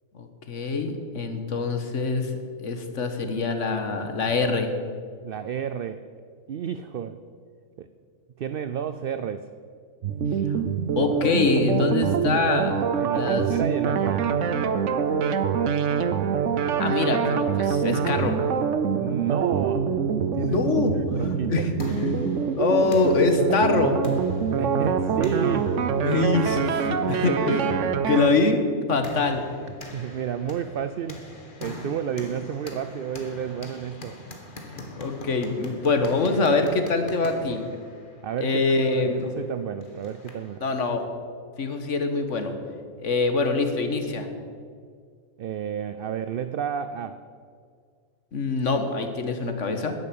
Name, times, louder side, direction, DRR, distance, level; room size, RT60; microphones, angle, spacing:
voice 1, 0.1-2.3 2.6-4.7 10.9-12.8 13.1-13.5 16.8-18.4 20.4-20.9 21.5-22.2 22.6-24.0 26.0-27.7 28.1-29.7 34.7-37.6 38.4-39.3 40.6-41.0 41.6-42.5 43.0-44.3 48.3-49.9, left 3 dB, 75° left, 7 dB, 1.7 m, -24 dB
voice 2, 5.2-6.0 6.5-7.2 7.8-7.9 8.4-9.5 13.0-14.4 19.0-19.9 20.3-20.6 20.9-21.7 24.6-25.8 27.5-27.7 28.3-28.4 29.9-31.2 31.6-34.2 37.5-37.8 38.2-40.6 45.4-47.2, right 8 dB, 60° right, 11 dB, 0.7 m, -31 dB
sound 1, 10.0-28.3, right 6 dB, 75° right, 1.1 m, -25 dB
sound 2, 21.3-40.6, left 1 dB, 40° left, 1.9 m, -43 dB
11.0 x 10.5 x 8.6 m, 2.1 s
omnidirectional pair, 1.3 m